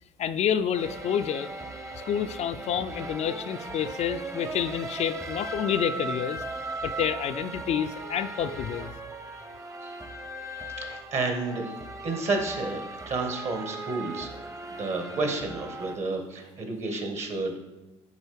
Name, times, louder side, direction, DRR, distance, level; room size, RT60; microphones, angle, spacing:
voice 1, 0.2-1.5 2.0-6.4 6.8-8.9, left 8 dB, 50° left, 10 dB, 0.4 m, -28 dB
sound 1, 0.7-16.0, right 2 dB, 20° right, 0.9 m, -38 dB
voice 2, 10.5-11.8 12.0-17.6, right 3 dB, 50° right, 4 dB, 1.7 m, -31 dB
10.0 x 4.0 x 3.5 m, 1.1 s
hypercardioid pair, 55°, 15 cm